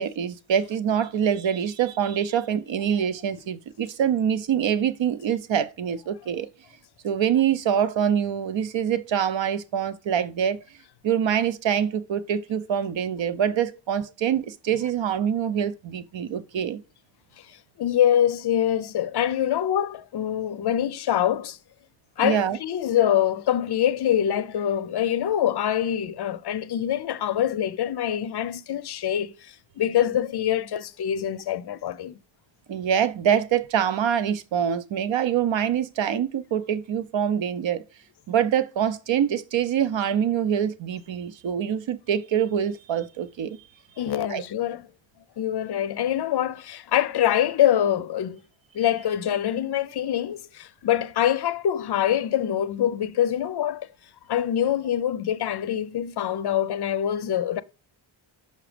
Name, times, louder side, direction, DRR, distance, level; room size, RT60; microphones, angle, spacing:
voice 1, 0.0-6.5 7.0-10.6 11.0-16.8 22.2-22.6 32.7-37.8 38.3-43.6 44.3-44.4, right 8 dB, 70° right, 0.8 m, -25 dB
voice 2, 17.4-21.6 22.2-32.2 44.0-44.8 45.4-48.4 48.7-53.9 54.3-57.6, left 10 dB, 55° left, 0.5 m, -25 dB
6.0 x 5.6 x 5.0 m
wide cardioid pair, 155°, 47 cm